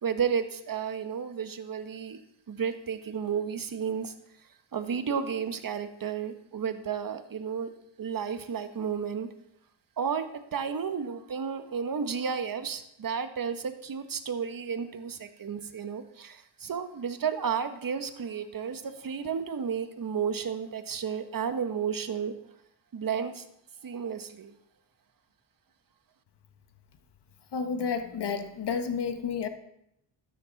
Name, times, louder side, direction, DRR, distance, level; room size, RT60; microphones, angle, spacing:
voice 1, 0.0-2.2 2.5-4.1 4.7-7.7 8.0-9.3 10.0-22.3 22.9-23.5 23.8-24.5, right 7 dB, 40° right, 8 dB, 1.5 m, -32 dB
voice 2, 27.5-29.5, left 6 dB, 55° left, 7 dB, 1.8 m, -31 dB
12.5 x 9.9 x 4.2 m, 0.77 s
supercardioid pair, 65°, 50 cm